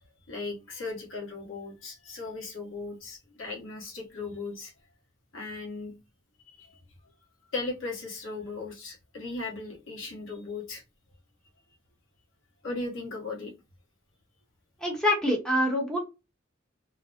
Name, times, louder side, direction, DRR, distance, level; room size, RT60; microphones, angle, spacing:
voice 1, 0.3-4.7 5.3-5.9 6.6-6.8 7.5-10.8 12.6-13.5, left 3 dB, 80° left, -1 dB, 1.1 m, -37 dB
voice 2, 14.8-16.0, left 1 dB, 5° left, 0 dB, 0.8 m, -25 dB
2.5 x 2.0 x 2.5 m, 0.26 s
head